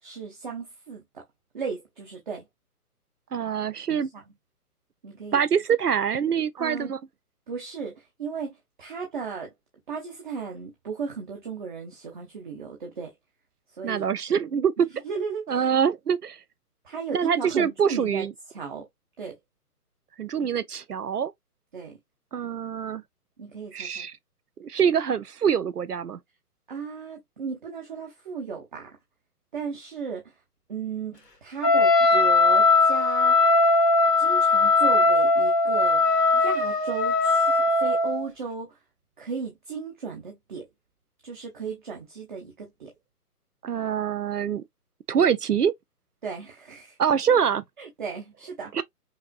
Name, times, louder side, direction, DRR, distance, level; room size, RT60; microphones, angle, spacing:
voice 1, 0.0-1.2 1.5-2.4 3.9-4.2 5.0-5.4 6.6-6.9 7.5-9.5 9.9-13.1 13.8-14.1 15.0-15.7 16.8-18.3 18.5-18.8 19.2-19.4 21.7-22.0 23.4-24.1 26.7-28.9 29.5-30.3 30.7-33.4 34.2-36.0 36.3-38.8 39.2-40.7 41.2-42.9 46.2-47.0 47.8-48.7, right 5 dB, 30° right, 1.0 m, -35 dB
voice 2, 3.3-4.1 5.3-7.0 13.8-14.9 15.5-16.4 17.1-18.3 20.2-21.3 22.3-23.0 23.7-24.1 24.6-26.2 43.6-44.6 45.1-45.7 47.0-47.6 48.7-48.8, right 7 dB, 75° right, 0.6 m, -24 dB
Wind instrument woodwind instrument, 31.6-38.2, left 3 dB, 90° left, 1.3 m, -20 dB
5.6 x 2.7 x 2.3 m
figure-of-eight pair, 140°, 46 cm